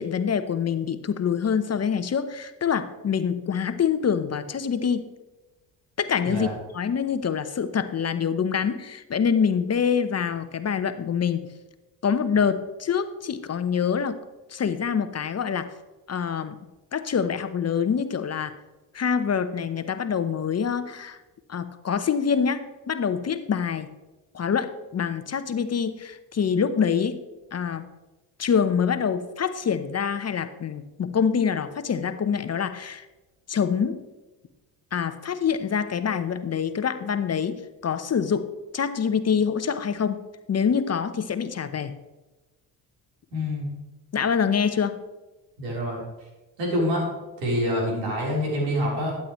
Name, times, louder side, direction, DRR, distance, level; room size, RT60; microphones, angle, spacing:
voice 1, 0.0-5.1 6.0-6.5 6.7-11.4 12.0-14.2 14.5-15.7 16.1-16.6 16.9-18.6 18.9-21.2 21.5-23.9 24.3-27.2 27.5-27.9 28.4-33.0 33.5-34.0 34.9-40.2 40.5-42.0 44.1-45.0, left 7 dB, 35° left, 11 dB, 0.8 m, -25 dB
voice 2, 43.3-43.7 45.6-46.0 46.6-47.1 47.4-49.2, equal, 85° right, -3 dB, 3.9 m, -26 dB
12.5 x 8.7 x 3.1 m, 1.1 s
hypercardioid pair, 60°, 45 cm